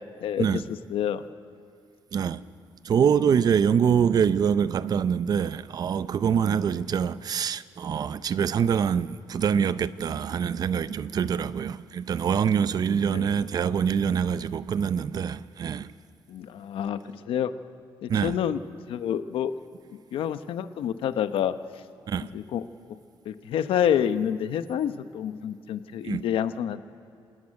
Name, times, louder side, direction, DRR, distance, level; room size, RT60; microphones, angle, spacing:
voice 1, 0.2-0.6 0.9-1.2 6.5-6.6 13.1-13.3 16.3-17.5 18.0-18.6 18.9-19.5 20.1-21.5 22.2-22.6 22.9-23.0 23.2-26.8, left 9 dB, 85° left, 0.9 m, -28 dB
voice 2, 2.1-2.4 2.8-15.9 18.1-18.4 22.1-22.3 26.0-26.2, right 7 dB, 45° right, 0.6 m, -25 dB
27.0 x 13.0 x 9.7 m
cardioid pair, 145°, 9 cm